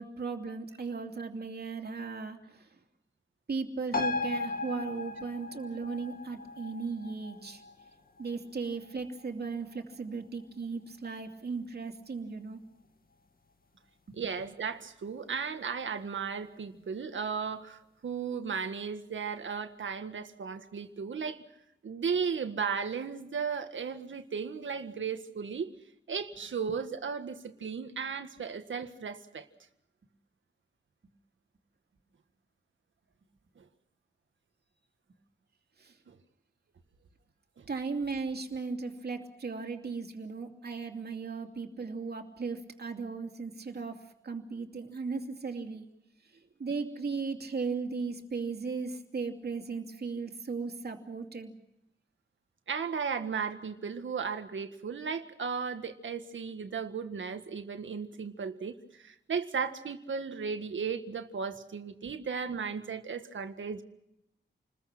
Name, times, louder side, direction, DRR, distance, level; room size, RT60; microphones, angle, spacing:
voice 1, 0.0-2.7 3.5-7.6 8.2-12.6 14.1-14.2 35.8-35.9 37.7-45.9 46.6-51.5 62.0-62.1, right 4 dB, 55° right, 4 dB, 2.8 m, -37 dB
sound 1, 3.9-10.9 11.2-11.3, left 3 dB, 50° left, 2.1 m, -38 dB
voice 2, 14.1-21.4 21.8-25.7 26.1-29.5 33.6-33.7 36.1-36.2 37.6-37.7 52.7-63.8, right 6 dB, 85° right, 8 dB, 1.8 m, -35 dB
29.0 x 21.0 x 6.1 m, 0.82 s
wide cardioid pair, 120°, 19 cm